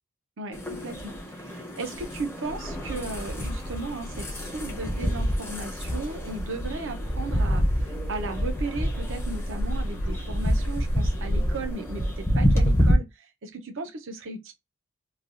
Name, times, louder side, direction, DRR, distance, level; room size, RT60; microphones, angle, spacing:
voice 1, 0.4-14.5, right 3 dB, 60° right, 0.7 m, -36 dB
sound 1, 0.5-12.9, equal, 10° left, 0.6 m, -28 dB
sound 2, 2.4-11.7, equal, 65° left, 0.8 m, -36 dB
3.2 x 2.3 x 2.5 m
head